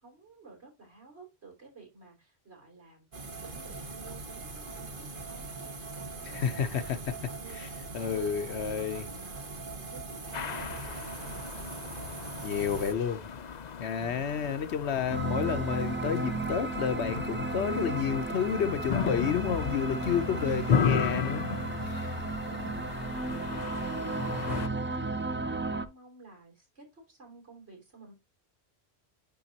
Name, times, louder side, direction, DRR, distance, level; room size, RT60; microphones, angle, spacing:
voice 1, 0.0-3.1 3.4-6.5 7.2-7.6 7.9-9.6 9.9-13.0 14.0-14.3 22.5-25.0 25.5-28.1, right 3 dB, 85° right, 3.8 m, -52 dB
sound 1, 3.1-12.9, right 3 dB, 55° right, 1.4 m, -41 dB
voice 2, 6.3-7.2 7.5-7.7 7.9-9.1 12.4-13.2 13.8-21.5 21.8-22.2, left 7 dB, 85° left, 1.1 m, -30 dB
sound 2, 10.3-24.7, left 6 dB, 50° left, 0.7 m, -35 dB
sound 3, 15.1-25.9, right 3 dB, 15° right, 0.5 m, -34 dB
10.5 x 3.9 x 2.8 m
omnidirectional pair, 1.1 m